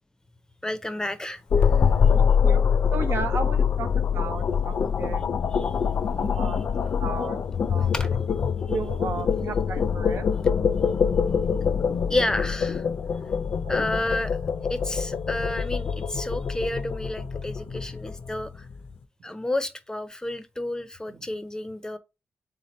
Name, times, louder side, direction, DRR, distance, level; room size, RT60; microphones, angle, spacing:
voice 1, 0.6-1.7 5.5-5.7 7.9-8.1 12.1-12.8 13.7-14.4 14.7-18.7 19.2-22.0, left 1 dB, 15° left, 0.5 m, -30 dB
sound 1, 1.5-18.7, left 6 dB, 60° left, 0.4 m, -24 dB
voice 2, 2.1-2.6 2.9-3.9 4.1-5.2 5.5-5.8 6.3-6.6 7.0-7.4 7.7-7.9 8.7-10.2 13.6-13.9 17.8-17.9 21.1-21.2, right 5 dB, 70° right, 0.6 m, -34 dB
3.7 x 2.8 x 4.1 m
cardioid pair, 65°, 4 cm